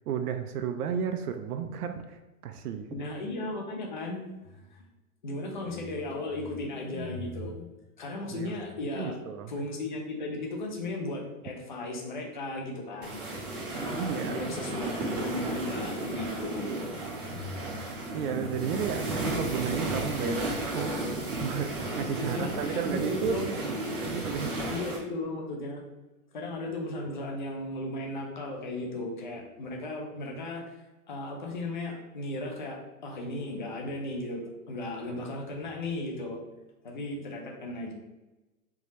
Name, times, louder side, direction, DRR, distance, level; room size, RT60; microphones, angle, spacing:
voice 1, 0.1-3.0 8.3-8.6 9.0-9.6 13.9-14.6 18.1-23.6 24.1-24.7, right 7 dB, 80° right, 7 dB, 0.5 m, -33 dB
voice 2, 2.9-4.9 5.2-7.7 8.0-9.1 9.5-13.2 13.5-16.7 17.3-17.5 22.2-23.5 24.7-25.8 26.3-30.6 31.1-34.4 34.7-36.4 36.8-37.9, left 2 dB, 35° left, 0 dB, 0.4 m, -36 dB
sound 1, 13.0-25.0, right 2 dB, 35° right, 0.7 m, -33 dB
3.5 x 2.7 x 3.0 m, 1.1 s
hypercardioid pair, 175°, 44 cm